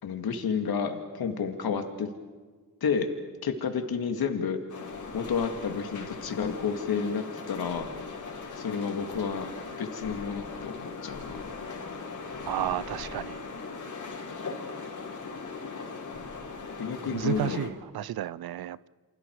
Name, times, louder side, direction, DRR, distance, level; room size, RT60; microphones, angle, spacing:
voice 1, 0.0-2.1 2.8-3.1 3.4-4.6 5.1-7.9 8.6-9.5 9.8-11.7 16.8-17.7, left 6 dB, 70° left, 2.4 m, -31 dB
sound 1, 4.7-17.7, left 4 dB, 50° left, 4.7 m, -39 dB
voice 2, 12.5-13.4 17.0-18.9, right 12 dB, 70° right, 0.7 m, -32 dB
29.0 x 26.0 x 4.8 m
cardioid pair, 75°, 39 cm